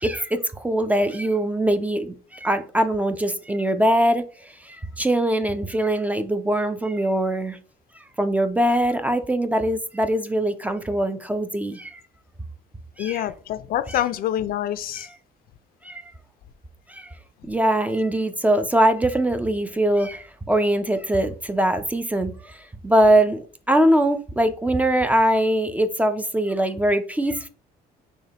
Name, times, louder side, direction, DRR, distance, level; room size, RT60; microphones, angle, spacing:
voice 1, 0.0-7.6 8.2-12.0 13.0-13.3 13.9-14.0 14.9-15.1 15.8-16.0 16.9-17.1 17.5-27.5, right 1 dB, 10° right, 0.3 m, -22 dB
voice 2, 13.0-15.1, left 12 dB, 60° left, 0.4 m, -26 dB
6.2 x 2.2 x 2.8 m
cardioid pair, 110°, 17 cm